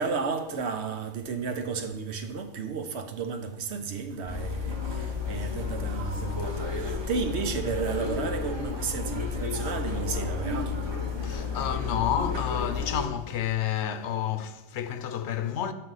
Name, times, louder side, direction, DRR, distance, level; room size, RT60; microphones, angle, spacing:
voice 1, 0.0-10.8, right 5 dB, 70° right, 0.9 m, -33 dB
sound 1, 4.3-13.1, left 5 dB, 25° right, 1.0 m, -32 dB
voice 2, 11.2-15.7, left 9 dB, 75° left, 0.8 m, -30 dB
7.5 x 6.0 x 3.9 m
omnidirectional pair, 1.2 m